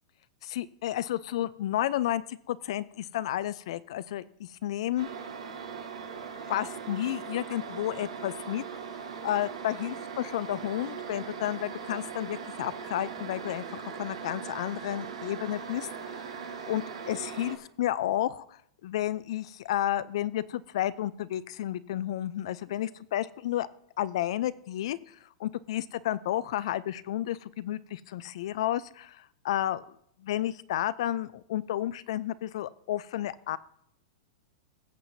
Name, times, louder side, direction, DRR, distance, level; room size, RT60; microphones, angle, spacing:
voice 1, 0.4-5.1 6.5-8.6 9.2-16.2 16.7-23.7 24.0-29.9 30.2-33.6, left 12 dB, 70° left, 17 dB, 0.5 m, -32 dB
sound 1, 5.0-17.6, right 6 dB, 90° right, 1.6 m, -40 dB
20.5 x 7.6 x 2.7 m, 0.70 s
hypercardioid pair, 130°, 3 cm